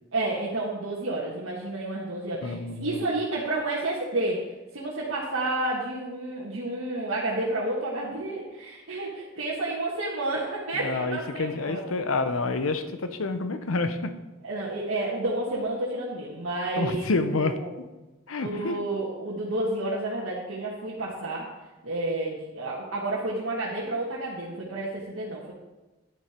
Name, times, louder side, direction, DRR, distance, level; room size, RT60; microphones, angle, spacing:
voice 1, 0.1-4.4 4.7-11.8 14.4-17.7 18.4-21.5 21.8-25.5, right 2 dB, 85° right, -5 dB, 1.7 m, -30 dB
voice 2, 2.4-3.0 10.7-14.1 16.8-17.6 18.3-18.8, left 3 dB, 85° left, 10 dB, 0.8 m, -28 dB
10.5 x 8.6 x 4.4 m, 1.1 s
head